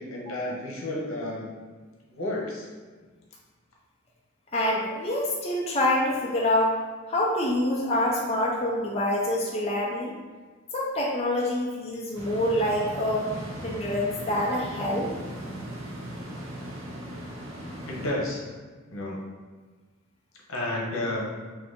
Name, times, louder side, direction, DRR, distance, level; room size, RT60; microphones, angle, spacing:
voice 1, 0.0-1.5 2.1-2.7 17.9-18.4 18.9-19.2 20.5-21.2, left 1 dB, 75° left, -2 dB, 0.9 m, -31 dB
voice 2, 4.5-6.7 7.1-10.1 10.7-13.3 13.6-15.1, left 1 dB, 30° left, -3 dB, 0.5 m, -26 dB
sound 1, 12.1-18.1, right 1 dB, 75° right, 0.9 m, -38 dB
4.5 x 2.7 x 3.7 m, 1.4 s
head